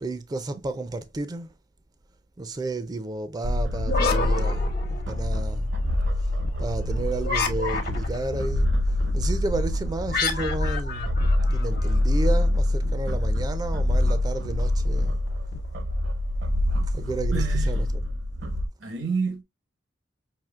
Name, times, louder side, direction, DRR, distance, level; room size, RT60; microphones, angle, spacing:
voice 1, 0.0-1.5 2.4-5.7 6.6-8.7 9.1-15.2 16.9-17.9, right 2 dB, 20° right, 0.4 m, -32 dB
sound 1, 3.4-18.7, left 1 dB, 70° right, 0.7 m, -25 dB
sound 2, 3.8-5.4 7.2-8.3 10.1-12.0, left 4 dB, 55° left, 0.9 m, -29 dB
sound 3, 4.7-16.1, left 4 dB, 85° left, 0.4 m, -39 dB
voice 2, 17.3-17.7 18.8-19.4, right 5 dB, 90° right, 1.1 m, -28 dB
5.7 x 2.7 x 2.3 m
head